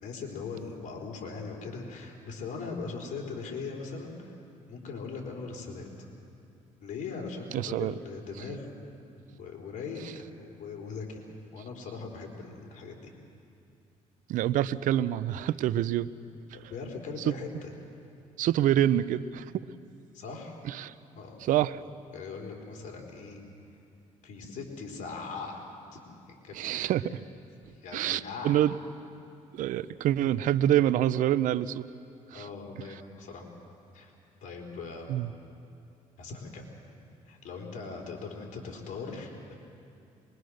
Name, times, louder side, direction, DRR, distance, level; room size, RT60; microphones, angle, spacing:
voice 1, 0.0-4.3 4.7-5.9 6.8-8.8 9.4-11.2 11.5-13.1 16.5-17.7 20.1-20.6 21.2-21.4 22.1-23.4 24.2-25.6 25.9-26.0 26.3-26.9 27.8-28.7 32.3-33.5 33.9-34.1 34.4-35.1 36.2-36.7 37.3-39.5, left 4 dB, 70° left, 0 dB, 4.1 m, -40 dB
voice 2, 7.5-7.9 14.3-16.1 17.3-17.4 18.4-19.4 20.7-20.9 21.4-21.8 26.5-27.0 27.9-28.8 29.5-31.8 32.3-32.5 35.1-35.3, right 12 dB, 75° right, 16 dB, 0.6 m, -26 dB
24.0 x 22.5 x 6.5 m, 2.6 s
cardioid pair, 85°, 14 cm